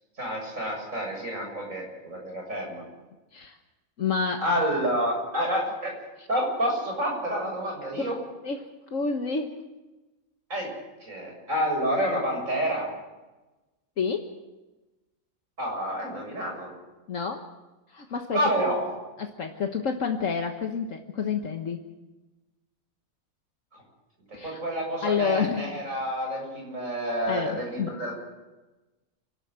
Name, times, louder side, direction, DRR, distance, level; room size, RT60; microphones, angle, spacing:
voice 1, 0.2-2.8 4.4-5.9 6.3-8.2 10.5-10.7 11.0-12.9 15.6-16.7 18.3-18.9 24.3-28.1, equal, 65° right, 0 dB, 7.7 m, -28 dB
voice 2, 4.0-4.4 6.2-6.3 8.0-8.1 8.4-9.5 14.0-14.3 17.1-17.5 17.9-18.4 19.2-21.8 24.3-24.6 25.0-25.7 27.3-28.0, left 5 dB, 65° left, 4 dB, 1.6 m, -29 dB
28.5 x 13.0 x 7.6 m, 1.1 s
omnidirectional pair, 1.4 m